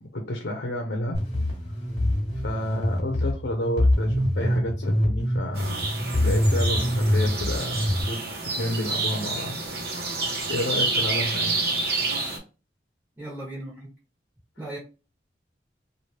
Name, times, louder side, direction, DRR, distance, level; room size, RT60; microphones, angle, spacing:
voice 1, 0.0-1.2 2.4-6.0 6.2-8.3 8.6-9.6 10.5-11.6, left 1 dB, 85° left, 0.7 m, -30 dB
sound 1, 1.1-8.0, left 1 dB, 40° left, 1.3 m, -24 dB
sound 2, 5.5-12.4, right 3 dB, 60° right, 1.1 m, -28 dB
voice 2, 13.2-13.9 14.6-14.8, right 1 dB, 20° right, 1.2 m, -36 dB
3.1 x 2.6 x 2.8 m
head